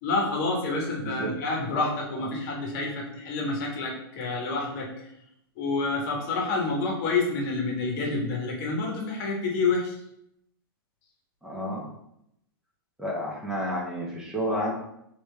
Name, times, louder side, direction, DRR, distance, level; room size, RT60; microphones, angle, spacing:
voice 1, 0.0-4.9 5.6-9.9, left 3 dB, 50° left, 0 dB, 1.1 m, -28 dB
voice 2, 11.4-11.9 13.0-14.7, equal, 5° right, -4 dB, 0.9 m, -31 dB
3.1 x 2.9 x 3.3 m, 0.77 s
hypercardioid pair, 110°, 13 cm